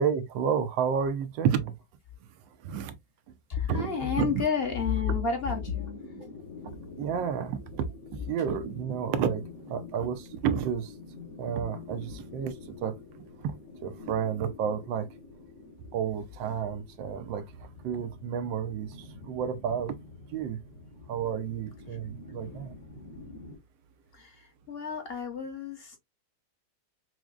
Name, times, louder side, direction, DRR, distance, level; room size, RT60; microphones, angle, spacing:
voice 1, 0.0-1.8 2.6-3.0 3.7-3.9 4.2-4.4 5.1-5.2 6.1-6.3 7.0-7.9 8.3-9.4 9.7-10.9 11.4-13.0 13.4-13.6 13.8-15.1 15.9-19.0 19.2-20.0 20.3-20.6 21.1-22.7, right 7 dB, 90° right, 1.3 m, -30 dB
voice 2, 3.5-6.0 24.1-24.3 24.7-26.0, left 6 dB, 45° left, 0.9 m, -30 dB
sound 1, 3.8-23.6, left 3 dB, 75° left, 2.3 m, -47 dB
5.9 x 2.1 x 2.3 m
omnidirectional pair, 2.0 m